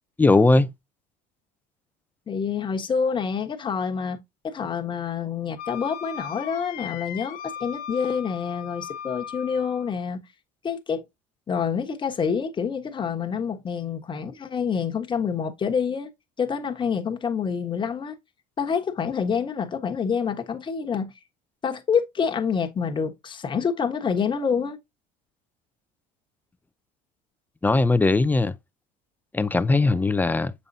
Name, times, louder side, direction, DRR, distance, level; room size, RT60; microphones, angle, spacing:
voice 1, 0.2-0.7 27.6-28.5 29.3-30.5, left 3 dB, 10° left, 0.5 m, -19 dB
voice 2, 2.3-4.2 4.4-10.2 10.6-11.0 11.5-16.1 16.4-18.1 18.6-21.1 21.6-24.8, left 6 dB, 30° left, 1.2 m, -27 dB
Wind instrument woodwind instrument, 5.6-9.9, left 9 dB, 60° left, 1.1 m, -38 dB
6.9 x 5.4 x 2.7 m
supercardioid pair, 105°, 16 cm